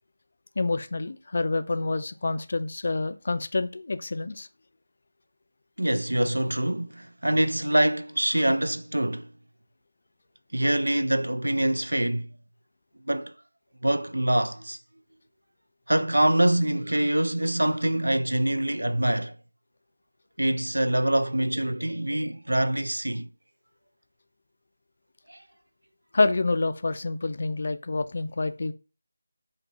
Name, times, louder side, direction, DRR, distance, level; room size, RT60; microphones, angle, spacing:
voice 1, 0.6-4.5 26.1-28.7, left 3 dB, 45° left, 0.3 m, -27 dB
voice 2, 5.8-9.3 10.5-12.3 13.1-13.3 13.8-14.8 15.9-19.3 20.4-23.3 25.3-25.4, right 1 dB, 75° right, 0.3 m, -25 dB
5.8 x 2.6 x 2.5 m
figure-of-eight pair, 165°, 0 cm